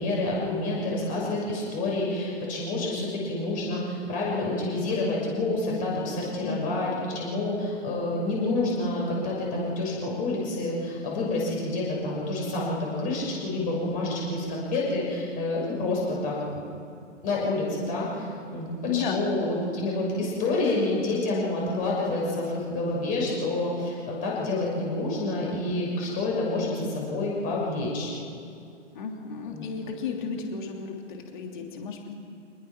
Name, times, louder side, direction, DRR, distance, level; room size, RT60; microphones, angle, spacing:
voice 1, 0.0-16.6 17.2-28.1 29.5-29.7, left 2 dB, 20° left, -3 dB, 6.3 m, -28 dB
voice 2, 6.4-7.1 18.8-19.3 28.9-32.1, left 6 dB, 40° left, 2 dB, 3.1 m, -33 dB
25.5 x 20.0 x 6.0 m, 2.6 s
figure-of-eight pair, 130°, 37 cm